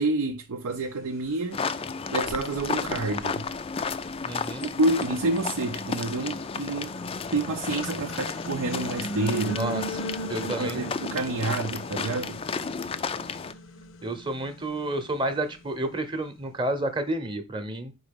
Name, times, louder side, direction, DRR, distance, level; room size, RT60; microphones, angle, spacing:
voice 1, 0.0-1.6 2.1-3.5 4.7-7.0 7.3-9.7 10.4-12.4, right 2 dB, 85° right, 0.5 m, -28 dB
sound 1, 1.5-1.6 2.2-4.5 5.0-16.3, right 1 dB, 60° left, 0.6 m, -39 dB
sound 2, 1.5-13.5, left 5 dB, 25° left, 0.3 m, -33 dB
voice 2, 4.2-4.6 9.6-10.9 14.0-17.9, right 1 dB, 20° right, 0.8 m, -30 dB
4.9 x 4.0 x 5.1 m
head